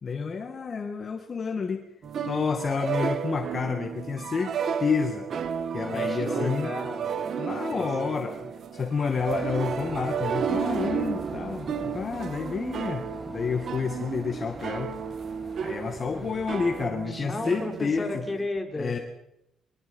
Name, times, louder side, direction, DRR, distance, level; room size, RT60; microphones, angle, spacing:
voice 1, 0.0-1.9 2.3-5.3 5.7-6.7 7.4-8.4 8.7-14.9 15.6-18.2 18.8-19.0, left 5 dB, 40° left, 5 dB, 2.0 m, -29 dB
sound 1, 2.0-18.5, right 7 dB, 60° right, 1.6 m, -32 dB
voice 2, 5.9-7.1 7.7-8.5 16.1-16.4 16.8-19.0, left 2 dB, 15° left, 4 dB, 4.5 m, -35 dB
sound 2, 9.1-16.9, right 2 dB, 25° right, 3.8 m, -44 dB
23.5 x 21.0 x 5.6 m, 0.82 s
cardioid pair, 90°, 0 cm